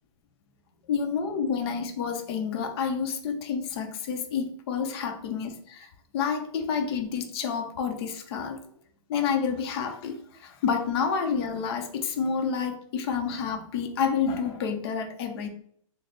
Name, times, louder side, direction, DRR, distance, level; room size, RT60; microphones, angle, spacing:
voice 1, 0.9-8.6 9.1-15.5, left 6 dB, 50° left, 5 dB, 0.6 m, -29 dB
3.3 x 2.0 x 3.9 m, 0.63 s
hypercardioid pair, 140°, 17 cm